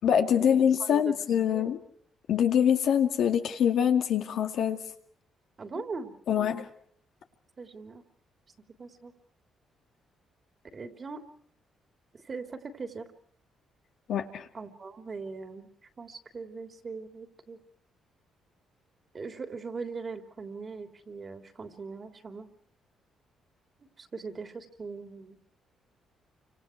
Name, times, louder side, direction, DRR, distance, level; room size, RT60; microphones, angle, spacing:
voice 1, 0.0-1.8 2.3-4.8 6.3-6.7 14.1-14.5, left 8 dB, 70° left, 5 dB, 2.4 m, -24 dB
voice 2, 0.8-1.1 1.5-1.7 5.6-6.1 7.6-8.0 8.8-9.1 10.7-11.2 12.1-13.1 14.5-15.7 16.0-17.6 19.1-22.5 24.0-25.4, right 4 dB, 35° right, 6 dB, 3.2 m, -40 dB
29.0 x 26.0 x 4.6 m, 0.62 s
cardioid pair, 90°, 0 cm